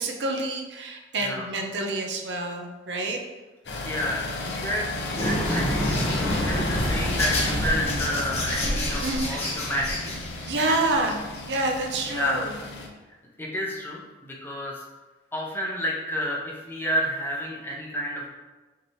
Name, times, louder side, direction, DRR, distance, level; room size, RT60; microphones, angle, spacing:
voice 1, 0.0-3.2 9.0-9.5 10.5-11.2 11.5-12.6, right 2 dB, 75° right, 3 dB, 0.7 m, -28 dB
sound 1, 3.6-12.9, left 2 dB, 70° left, 0.7 m, -34 dB
voice 2, 3.8-10.1 12.1-12.4 13.4-14.8 15.3-18.3, equal, 10° left, -4 dB, 0.8 m, -30 dB
sound 2, 5.2-11.6, left 1 dB, 35° left, 1.0 m, -28 dB
5.9 x 2.9 x 3.1 m, 1.2 s
head